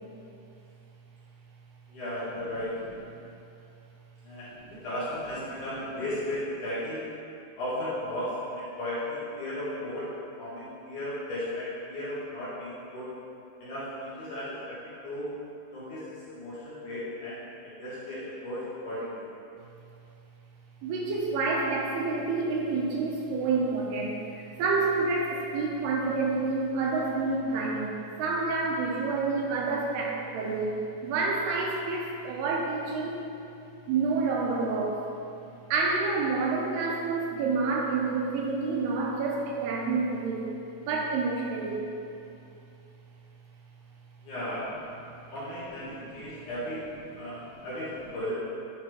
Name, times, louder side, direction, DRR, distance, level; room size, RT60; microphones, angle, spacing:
voice 1, 1.9-2.7 4.2-4.5 4.8-7.0 7.6-13.1 13.6-14.8 15.0-15.3 15.7-19.2 44.2-44.7 45.3-48.3, left 1 dB, 60° left, -10 dB, 2.2 m, -35 dB
voice 2, 20.8-33.2 33.9-35.1 35.7-40.5 40.8-41.9 46.1-46.2 47.5-47.6, right 3 dB, 80° right, -2 dB, 2.6 m, -28 dB
10.5 x 4.9 x 3.0 m, 2.6 s
omnidirectional pair, 4.8 m